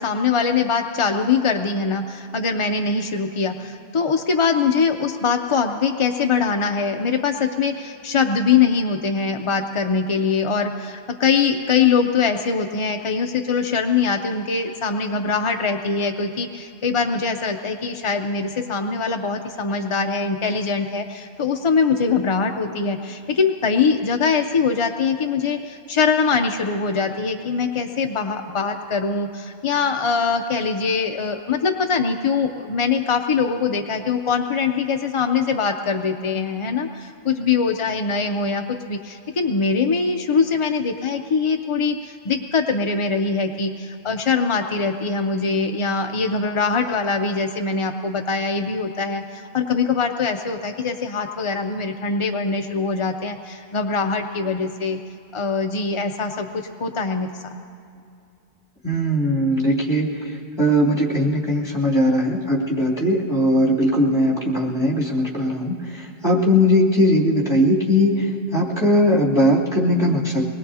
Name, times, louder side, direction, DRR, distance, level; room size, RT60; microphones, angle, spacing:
voice 1, 0.0-55.0 55.3-57.6, left 5 dB, 45° left, 5 dB, 0.4 m, -22 dB
voice 2, 58.8-70.5, equal, 25° left, -5 dB, 2.8 m, -19 dB
24.5 x 20.0 x 2.8 m, 2.5 s
omnidirectional pair, 1.1 m